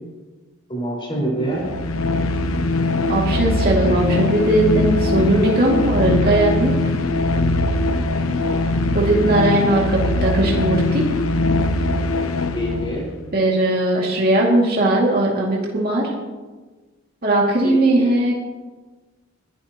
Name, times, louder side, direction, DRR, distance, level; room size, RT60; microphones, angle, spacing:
voice 1, 0.7-1.6 8.5-8.7 12.5-13.0 17.6-18.1, right 1 dB, 25° left, -2 dB, 4.7 m, -26 dB
sound 1, 1.5-13.1, left 2 dB, 85° left, 1.0 m, -21 dB
voice 2, 3.1-6.7 8.9-11.0 13.3-16.1 17.2-18.4, right 1 dB, 45° right, -3 dB, 2.3 m, -18 dB
21.5 x 12.0 x 3.0 m, 1.3 s
head